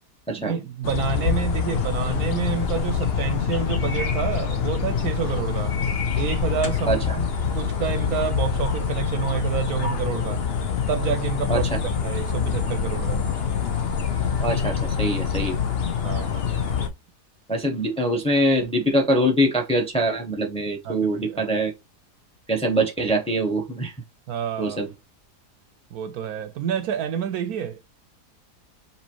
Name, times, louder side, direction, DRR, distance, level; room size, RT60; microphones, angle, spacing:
voice 1, 0.3-5.8 6.1-10.4 10.9-13.2 16.0-16.4 20.8-21.5 24.3-24.8 25.9-27.8, right 8 dB, 70° right, 1.0 m, -29 dB
sound 1, 0.8-16.9, left 6 dB, 50° left, 0.8 m, -25 dB
voice 2, 14.4-15.6 17.5-21.7 22.5-23.9 24.6-24.9, right 1 dB, 5° left, 0.8 m, -23 dB
5.4 x 3.0 x 2.9 m
omnidirectional pair, 1.7 m